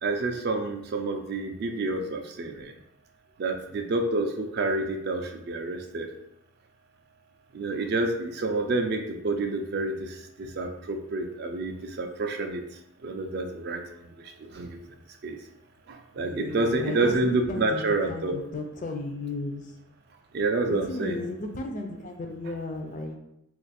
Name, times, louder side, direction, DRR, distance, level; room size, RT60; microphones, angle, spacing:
voice 1, 0.0-2.7 3.4-6.1 7.5-12.6 13.0-13.8 14.5-14.8 15.2-15.4 15.9-18.4 20.3-21.3, right 2 dB, 50° right, 4 dB, 0.3 m, -28 dB
voice 2, 16.2-17.1 17.5-19.6 20.7-23.2, left 2 dB, 35° left, 3 dB, 0.3 m, -34 dB
2.5 x 2.4 x 4.0 m, 0.80 s
head